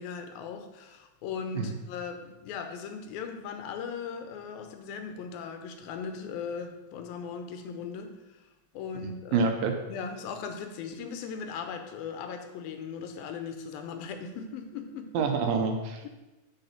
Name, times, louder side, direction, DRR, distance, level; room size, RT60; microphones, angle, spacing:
voice 1, 0.0-8.1 8.7-9.5 9.9-15.3, left 6 dB, 80° left, 6 dB, 2.4 m, -38 dB
voice 2, 9.3-9.7 15.1-16.1, right 5 dB, 75° right, 4 dB, 2.4 m, -27 dB
7.0 x 6.6 x 5.8 m, 1.1 s
omnidirectional pair, 4.4 m